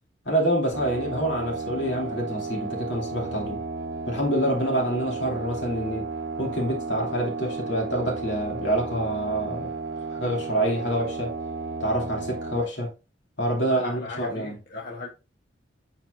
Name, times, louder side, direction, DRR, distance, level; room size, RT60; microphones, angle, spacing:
voice 1, 0.3-3.6 4.1-6.1 6.4-9.7 10.1-11.3 11.8-12.9 13.4-14.5, right 1 dB, 70° left, 2.5 m, -27 dB
sound 1, 0.7-12.6, right 3 dB, 65° right, 0.8 m, -33 dB
voice 2, 13.6-15.1, left 3 dB, 50° left, 1.0 m, -38 dB
9.0 x 4.2 x 2.5 m
head